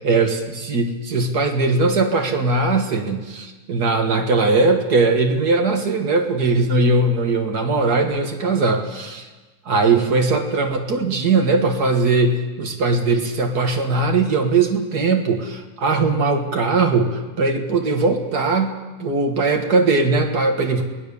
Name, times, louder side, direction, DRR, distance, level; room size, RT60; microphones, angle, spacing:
voice 1, 0.0-9.3 9.7-20.8, right 3 dB, 70° right, 3 dB, 2.1 m, -20 dB
23.5 x 18.5 x 7.0 m, 1.3 s
omnidirectional pair, 1.7 m